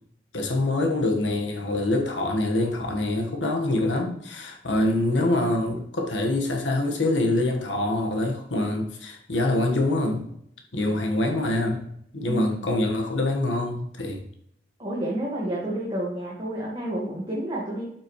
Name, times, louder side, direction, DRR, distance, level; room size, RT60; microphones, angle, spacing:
voice 1, 0.3-10.3 10.7-11.9 12.1-14.2, left 2 dB, 90° left, 2 dB, 1.5 m, -25 dB
voice 2, 12.2-12.6 14.8-17.8, right 1 dB, 25° right, -5 dB, 1.7 m, -30 dB
12.0 x 6.2 x 3.2 m, 0.71 s
head